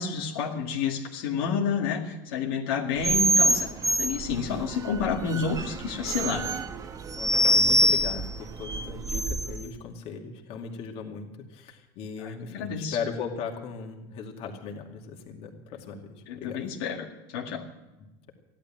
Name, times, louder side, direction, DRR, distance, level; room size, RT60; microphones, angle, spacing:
voice 1, 0.0-6.6 12.2-13.0 16.3-17.6, left 6 dB, 85° left, 0 dB, 2.1 m, -30 dB
sound 1, 3.0-9.7, right 1 dB, 30° right, 0.9 m, -25 dB
voice 2, 7.2-16.7 18.0-18.3, left 5 dB, 55° left, 2 dB, 2.4 m, -38 dB
14.5 x 11.5 x 7.5 m, 1.0 s
supercardioid pair, 125°, 12 cm